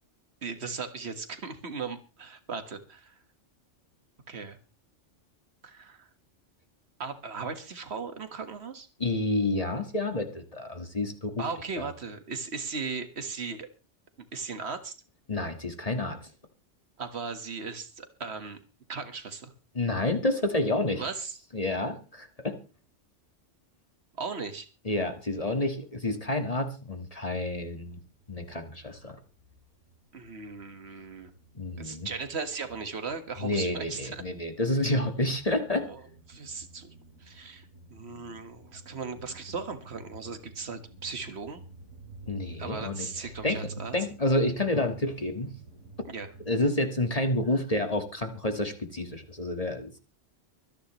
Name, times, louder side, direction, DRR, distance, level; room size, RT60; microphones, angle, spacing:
voice 1, 0.4-3.2 4.3-4.6 5.6-6.1 7.0-8.9 11.4-13.7 14.3-14.9 17.0-18.6 18.9-19.5 21.0-21.3 24.2-24.7 30.1-31.3 31.8-34.2 35.8-36.0 36.3-36.9 37.2-41.6 42.6-44.0 46.1-46.3, right 5 dB, 55° right, 8 dB, 1.8 m, -37 dB
voice 2, 9.0-11.4 11.8-11.9 15.3-16.3 19.8-21.0 21.5-22.6 24.9-28.0 28.3-29.2 31.6-32.1 33.4-35.9 42.3-43.1 43.4-43.6 43.9-45.5 46.5-50.0, left 1 dB, 30° left, 6 dB, 1.7 m, -29 dB
sound 1, 28.0-28.5 28.7-46.5, right 3 dB, 85° right, 2.9 m, -50 dB
24.0 x 10.5 x 3.1 m, 0.33 s
omnidirectional pair, 1.3 m